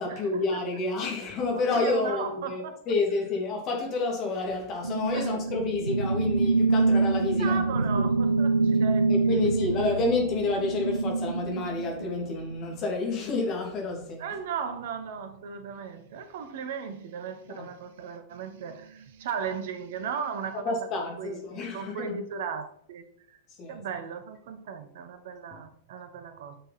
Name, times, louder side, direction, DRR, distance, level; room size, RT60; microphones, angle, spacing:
voice 1, 0.0-8.1 8.7-8.8 9.1-14.4 17.5-17.7 20.5-22.2 23.5-24.0 25.5-25.6, left 3 dB, 35° left, 3.0 m, -29 dB
voice 2, 1.5-2.9 5.1-5.3 7.4-9.4 14.2-20.8 21.2-23.0 23.7-26.6, right 6 dB, 55° right, 1.1 m, -36 dB
sound 1, 4.8-12.6, right 3 dB, 80° right, 0.4 m, -26 dB
9.1 x 6.4 x 4.4 m
figure-of-eight pair, 90°, 0 cm